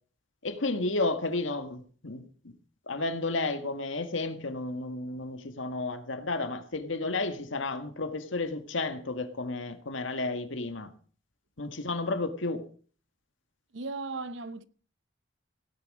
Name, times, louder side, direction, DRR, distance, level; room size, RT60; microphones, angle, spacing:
voice 1, 0.4-2.5 2.9-10.9 11.6-12.6, left 2 dB, 90° left, 1.8 m, -32 dB
voice 2, 13.7-14.6, right 3 dB, 70° right, 0.8 m, -36 dB
17.0 x 10.5 x 4.9 m
head